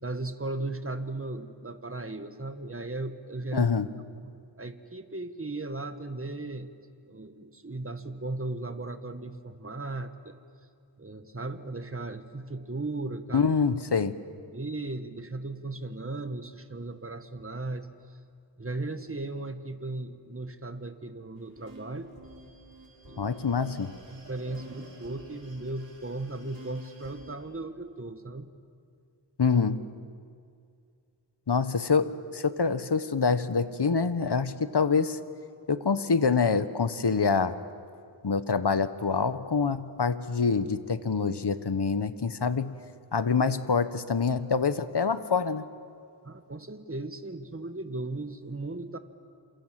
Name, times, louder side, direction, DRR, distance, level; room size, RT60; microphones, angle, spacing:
voice 1, 0.0-3.7 4.2-6.7 7.1-10.4 11.0-13.5 14.5-18.0 18.6-22.1 23.1-23.3 24.1-28.5 46.2-49.0, right 2 dB, 30° right, 8 dB, 1.6 m, -36 dB
voice 2, 3.5-3.9 13.3-14.2 23.2-23.9 29.4-29.9 31.5-35.2 35.7-37.6 38.2-42.8 43.1-45.6, left 5 dB, 60° left, 12 dB, 1.3 m, -26 dB
sound 1, 21.4-27.4, right 1 dB, 50° right, 7.5 m, -49 dB
28.0 x 27.0 x 7.7 m, 2.3 s
wide cardioid pair, 45°, 46 cm